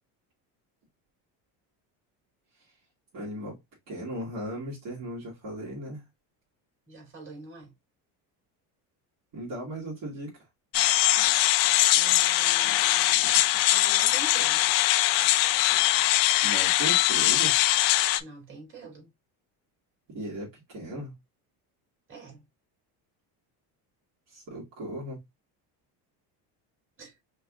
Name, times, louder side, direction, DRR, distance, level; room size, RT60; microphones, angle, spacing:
voice 1, 3.1-3.5 3.9-6.0 9.3-10.3 13.2-13.3 16.4-17.5 20.1-21.1 24.3-25.2, right 1 dB, 55° right, 2.1 m, -36 dB
voice 2, 6.9-7.7 11.9-14.7 18.2-19.1 22.1-22.4 27.0-27.1, right 3 dB, 30° right, 2.7 m, -46 dB
sound 1, 10.7-18.2, left 15 dB, 90° left, 0.5 m, -22 dB
5.2 x 2.6 x 2.4 m
cardioid pair, 135°, 41 cm